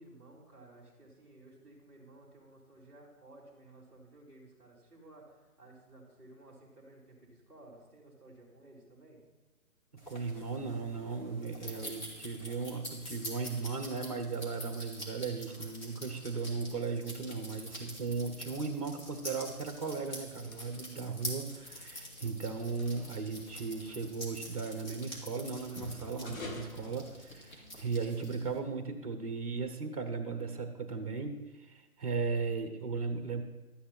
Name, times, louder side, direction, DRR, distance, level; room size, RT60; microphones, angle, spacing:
voice 1, 0.0-9.3, right 2 dB, 5° left, -4 dB, 3.1 m, -56 dB
sound 1, 10.0-28.6, equal, 30° left, 2.4 m, -47 dB
voice 2, 10.1-33.4, right 4 dB, 25° right, 7 dB, 1.0 m, -37 dB
sound 2, 17.3-27.8, left 3 dB, 65° left, 1.9 m, -52 dB
12.5 x 9.7 x 4.4 m, 1.2 s
hypercardioid pair, 165°, 44 cm